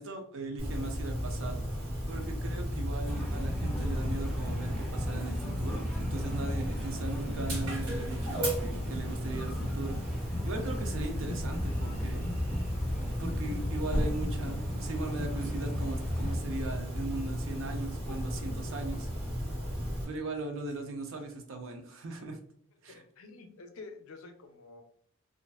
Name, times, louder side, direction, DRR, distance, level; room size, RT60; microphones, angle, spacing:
voice 1, 0.0-1.6 2.1-12.3 13.2-19.1 20.0-22.4 22.8-23.0, right 2 dB, 60° right, 4 dB, 0.5 m, -39 dB
Dog, 0.6-20.0, equal, 85° right, 1.0 m, -34 dB
sound 1, 3.0-16.4, left 1 dB, ahead, 0.4 m, -38 dB
voice 2, 22.9-24.8, left 3 dB, 70° left, 5 dB, 0.4 m, -49 dB
2.4 x 2.4 x 2.3 m, 0.63 s
head